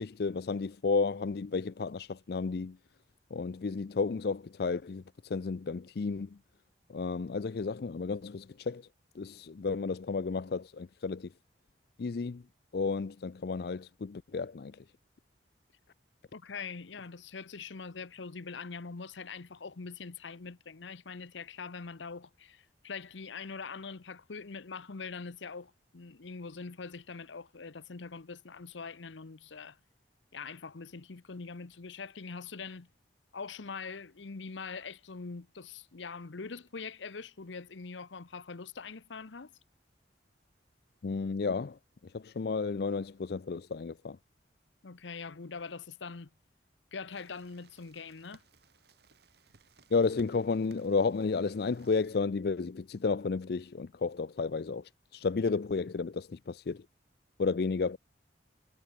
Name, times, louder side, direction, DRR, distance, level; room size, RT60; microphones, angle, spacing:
voice 1, 0.0-2.8 3.3-6.4 6.9-8.9 9.2-11.3 12.0-12.4 12.7-14.8 41.0-41.8 42.1-44.2 49.9-56.8 57.4-58.0, left 4 dB, 55° left, 0.4 m, -32 dB
voice 2, 16.3-29.8 30.3-32.9 33.3-39.5 44.8-46.3 46.9-48.4, left 4 dB, 85° left, 0.9 m, -43 dB
sound 1, 47.1-52.2, right 3 dB, 60° right, 1.6 m, -61 dB
head